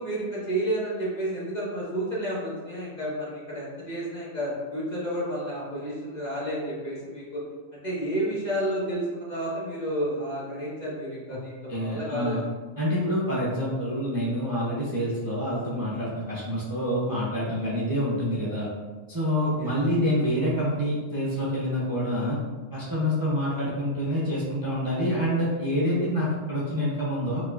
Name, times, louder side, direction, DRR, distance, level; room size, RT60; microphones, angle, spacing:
voice 1, 0.0-7.4 7.7-12.4 19.4-19.8, right 1 dB, 35° left, -7 dB, 1.2 m, -31 dB
voice 2, 11.7-12.4 12.8-18.7 19.1-22.4 22.7-27.4, equal, 20° right, -8 dB, 0.8 m, -27 dB
5.4 x 3.0 x 2.5 m, 1.4 s
omnidirectional pair, 1.3 m